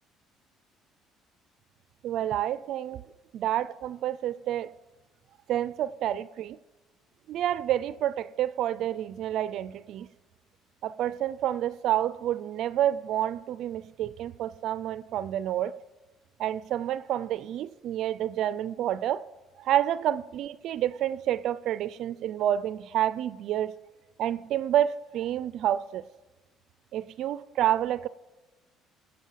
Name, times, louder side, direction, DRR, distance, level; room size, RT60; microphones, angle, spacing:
voice 1, 2.0-3.0 3.3-4.7 5.5-6.6 7.3-10.1 10.8-15.7 16.4-19.2 19.6-23.7 24.2-26.0 26.9-28.1, right 11 dB, 65° right, 0.4 m, -29 dB
17.5 x 7.6 x 5.7 m
supercardioid pair, 90°, 0 cm